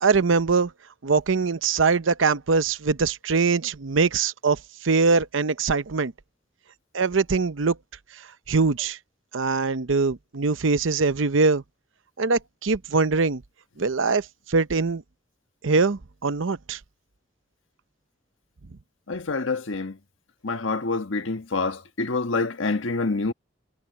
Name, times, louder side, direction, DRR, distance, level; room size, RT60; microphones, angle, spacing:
voice 1, 0.0-0.7 1.0-4.6 4.8-6.1 6.9-7.8 8.5-9.0 9.3-11.6 12.2-13.4 13.8-15.0 15.6-16.8, right 4 dB, 85° right, 0.7 m, -22 dB
voice 2, 19.1-20.0 20.4-23.3, left 3 dB, 90° left, 1.4 m, -27 dB
head